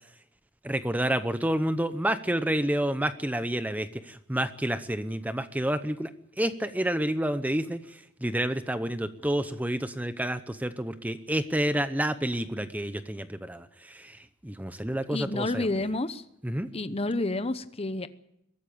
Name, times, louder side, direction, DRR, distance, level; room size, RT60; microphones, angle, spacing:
voice 1, 0.6-6.1 6.4-15.7 16.4-16.7, right 1 dB, 10° right, 11 dB, 0.8 m, -29 dB
voice 2, 15.1-16.2 16.7-18.1, left 2 dB, 30° left, 12 dB, 0.9 m, -29 dB
22.5 x 14.0 x 8.5 m, 0.78 s
head